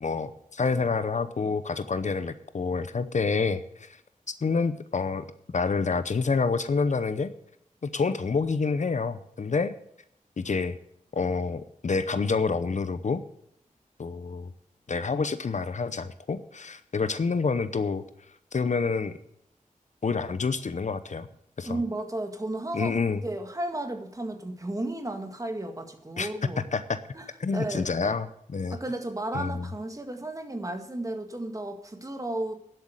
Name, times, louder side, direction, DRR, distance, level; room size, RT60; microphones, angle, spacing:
voice 1, 0.0-4.0 4.3-5.3 5.5-7.3 7.8-9.8 10.4-10.8 11.1-13.2 14.0-14.5 14.9-18.0 18.5-19.2 20.0-21.3 21.6-21.8 22.7-23.2 26.2-26.3 26.7-27.0 27.4-28.8 29.3-29.7, left 4 dB, 60° left, 13 dB, 0.8 m, -28 dB
voice 2, 21.6-26.7 27.1-27.3 27.5-28.1 28.7-32.5, right 1 dB, 25° right, 5 dB, 2.0 m, -33 dB
11.5 x 8.0 x 6.6 m, 0.74 s
wide cardioid pair, 70°, 14 cm